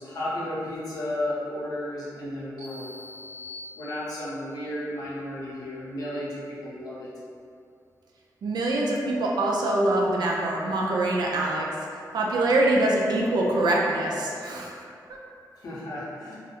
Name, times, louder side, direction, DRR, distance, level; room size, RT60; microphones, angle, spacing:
voice 1, 0.0-2.9 3.8-7.1 15.6-16.4, left 1 dB, 60° left, -8 dB, 0.7 m, -33 dB
sound 1, 2.6-4.4, left 2 dB, 15° right, 1.0 m, -43 dB
voice 2, 8.4-11.7 12.1-14.7 15.1-15.2, right 2 dB, 75° right, -2 dB, 0.4 m, -24 dB
2.3 x 2.0 x 2.9 m, 2.4 s
wide cardioid pair, 160°, 7 cm